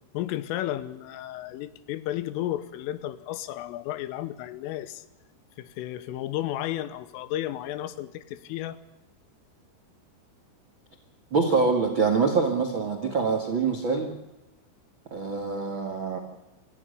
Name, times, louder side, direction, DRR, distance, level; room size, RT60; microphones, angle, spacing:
voice 1, 0.1-5.0 5.6-8.8, left 13 dB, 85° left, 14 dB, 3.5 m, -33 dB
voice 2, 11.3-14.1 15.1-16.2, right 4 dB, 65° right, 2 dB, 1.1 m, -25 dB
26.0 x 15.0 x 6.8 m, 0.98 s
omnidirectional pair, 5.8 m